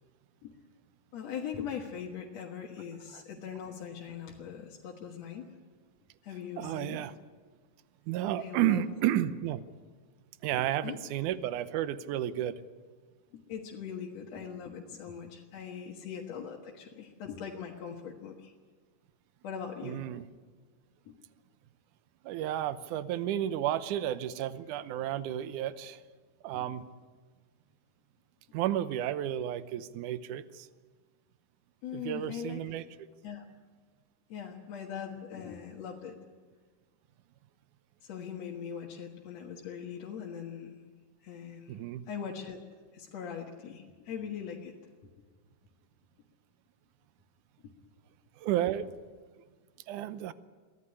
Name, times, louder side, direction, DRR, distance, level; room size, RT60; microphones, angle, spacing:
voice 1, 1.1-5.5 6.2-7.0 8.4-8.8 10.5-11.0 13.3-18.5 19.4-20.0 21.1-21.2 26.5-26.7 31.8-32.8 33.2-33.4 34.3-36.2 38.0-40.8 41.2-41.8 42.1-42.6 42.9-44.7 47.6-47.7, left 7 dB, 60° left, -1 dB, 2.4 m, -41 dB
voice 2, 6.6-7.1 8.1-9.6 10.4-12.6 19.8-20.3 22.2-26.0 26.4-26.8 28.5-30.7 31.9-32.8 41.7-42.0 48.4-48.9 49.9-50.3, right 12 dB, 75° right, 14 dB, 2.2 m, -32 dB
23.5 x 15.5 x 9.9 m, 1.5 s
omnidirectional pair, 3.8 m